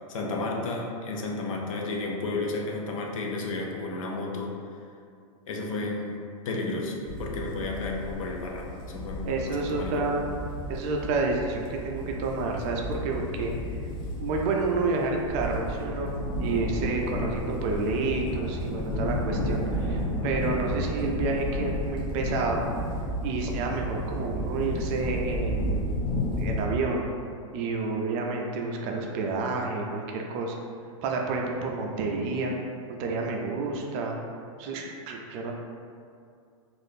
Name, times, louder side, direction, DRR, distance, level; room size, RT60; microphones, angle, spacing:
voice 1, 0.1-4.5 5.5-10.1, left 3 dB, 75° left, 0 dB, 0.6 m, -32 dB
sound 1, 7.0-26.6, equal, 25° left, 0.5 m, -32 dB
voice 2, 9.3-10.2 10.7-13.5 14.2-16.1 16.4-22.7 23.2-26.1 26.4-27.1 27.5-30.6 31.0-32.6 32.9-34.2 34.6-35.5, right 3 dB, 40° right, 0 dB, 0.4 m, -29 dB
3.4 x 2.4 x 2.7 m, 2.3 s
hypercardioid pair, 135°, 17 cm